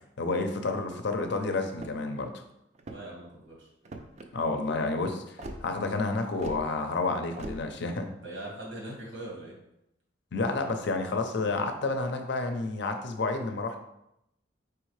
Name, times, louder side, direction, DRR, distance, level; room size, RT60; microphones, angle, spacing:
voice 1, 0.2-2.4 4.3-8.1 10.3-13.8, left 3 dB, 65° left, 6 dB, 0.5 m, -30 dB
sound 1, 1.7-2.2 2.7-3.2 3.8-4.3 5.4-5.6 6.4-6.6 7.4-7.6, right 1 dB, 35° right, 0.4 m, -40 dB
voice 2, 2.9-3.7 8.2-9.5, right 1 dB, 85° right, -3 dB, 1.7 m, -41 dB
4.7 x 3.5 x 3.2 m, 0.82 s
head